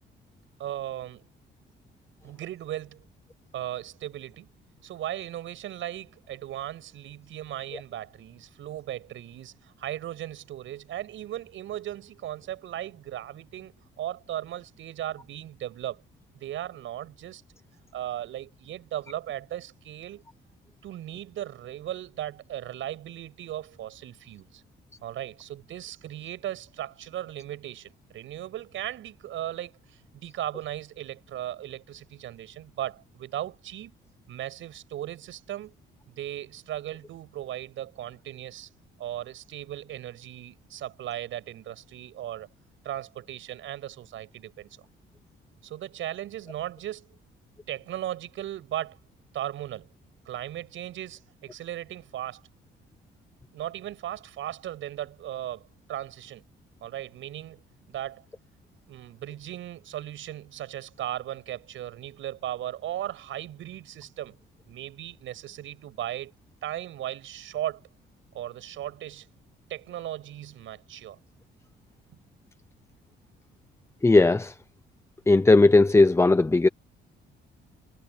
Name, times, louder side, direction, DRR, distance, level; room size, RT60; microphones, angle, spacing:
voice 1, 0.6-1.3 2.2-3.1 3.5-4.5 4.8-16.0 16.4-17.4 17.9-20.2 20.8-24.6 25.0-33.9 34.3-35.7 36.1-38.7 39.0-42.5 42.8-44.7 45.6-47.1 47.7-49.0 49.3-49.9 50.3-52.4 53.5-56.4 56.8-57.6 57.9-58.2 58.9-64.4 64.7-66.3 66.6-67.8 68.3-69.3 69.7-71.2, right 12 dB, 80° right, 7.5 m, -37 dB
voice 2, 74.0-74.5 75.3-76.7, left 2 dB, 15° left, 0.7 m, -17 dB
cardioid pair, 90°, 20 cm